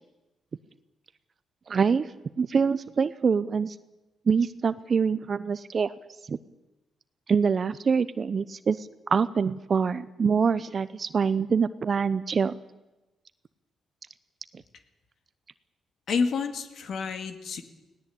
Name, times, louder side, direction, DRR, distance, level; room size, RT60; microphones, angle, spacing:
voice 1, 1.7-2.1 2.4-3.7 4.3-5.9 6.3-6.4 7.3-12.6, right 6 dB, 50° right, 14 dB, 0.7 m, -25 dB
voice 2, 16.1-17.6, left 5 dB, 70° left, 7 dB, 2.2 m, -29 dB
19.5 x 18.0 x 8.6 m, 1.0 s
cardioid pair, 65°, 0 cm